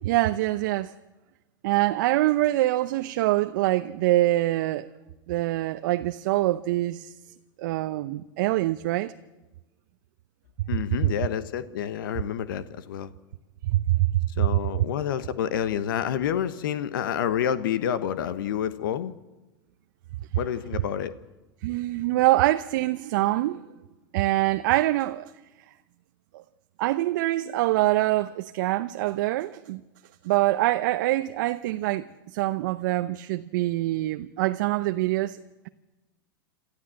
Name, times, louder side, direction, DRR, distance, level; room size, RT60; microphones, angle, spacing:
voice 1, 0.0-0.9 1.6-4.9 5.3-7.1 7.6-9.1 11.0-11.1 13.6-14.1 14.4-14.6 21.6-23.6 24.1-25.3 26.3-26.4 26.8-29.8 30.2-32.1 32.3-35.4, right 16 dB, 60° right, 0.7 m, -24 dB
voice 2, 10.7-13.1 14.4-19.1 20.4-21.1, left 9 dB, 70° left, 1.2 m, -28 dB
28.0 x 13.5 x 7.7 m
hypercardioid pair, 110°, 12 cm